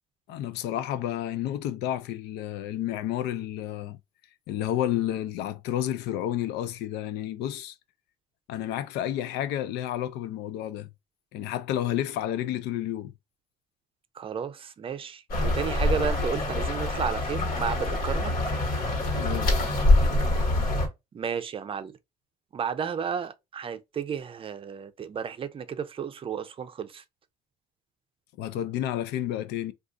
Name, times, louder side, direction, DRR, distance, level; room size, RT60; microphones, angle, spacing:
voice 1, 0.3-4.0 4.5-7.7 8.5-10.9 11.3-13.1 19.2-19.6 28.4-29.7, left 12 dB, 85° left, 0.4 m, -30 dB
voice 2, 14.2-18.3 21.1-21.9 22.5-27.0, right 7 dB, 30° right, 0.5 m, -32 dB
sound 1, 15.3-20.9, left 2 dB, 55° left, 1.5 m, -25 dB
2.5 x 2.4 x 3.6 m
cardioid pair, 110°, 17 cm